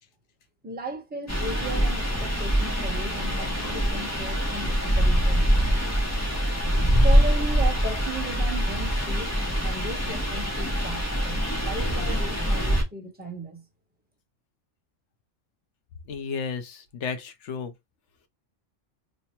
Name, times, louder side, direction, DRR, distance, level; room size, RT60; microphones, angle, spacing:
voice 1, 0.6-5.6 7.0-13.6, right 2 dB, 10° right, 0.9 m, -36 dB
sound 1, 1.3-12.8, equal, 15° left, 0.6 m, -24 dB
voice 2, 16.1-17.7, left 5 dB, 70° left, 1.0 m, -33 dB
3.3 x 2.1 x 4.2 m
omnidirectional pair, 1.3 m